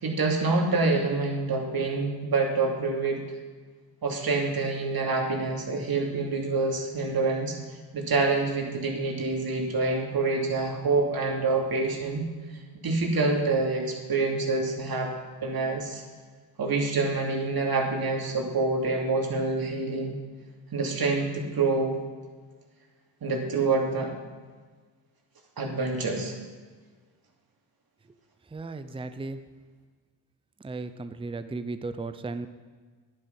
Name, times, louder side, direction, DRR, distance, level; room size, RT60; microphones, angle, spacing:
voice 1, 0.0-3.2 4.0-7.6 7.9-12.3 12.8-15.1 15.4-16.0 16.6-20.2 20.7-22.0 23.2-24.1 25.6-26.3, right 3 dB, 45° right, 0 dB, 2.9 m, -26 dB
voice 2, 28.5-29.4 30.6-32.5, right 3 dB, 10° right, 10 dB, 0.7 m, -35 dB
11.0 x 10.5 x 5.4 m, 1.5 s
hypercardioid pair, 50°, 49 cm